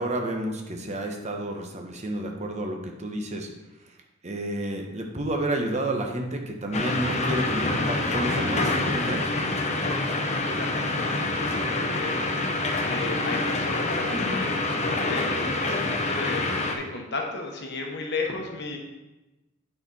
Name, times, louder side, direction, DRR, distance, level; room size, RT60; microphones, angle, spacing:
voice 1, 0.0-3.5 4.2-9.3, right 1 dB, 35° right, 3 dB, 0.9 m, -30 dB
sound 1, 6.7-16.8, left 2 dB, 35° left, 0.7 m, -26 dB
voice 2, 10.4-12.1 12.9-16.5 16.8-18.8, left 3 dB, 55° left, 1 dB, 1.1 m, -34 dB
8.8 x 4.4 x 4.1 m, 1.0 s
head